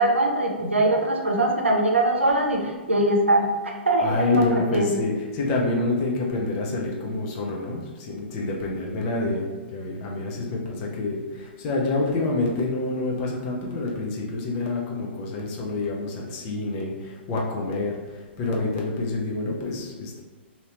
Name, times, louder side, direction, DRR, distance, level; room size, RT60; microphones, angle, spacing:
voice 1, 0.0-5.0, right 1 dB, 85° right, 1 dB, 0.6 m, -22 dB
voice 2, 4.0-20.2, left 2 dB, 35° left, -2 dB, 0.6 m, -27 dB
2.8 x 2.7 x 3.0 m, 1.3 s
figure-of-eight pair, 115°, 6 cm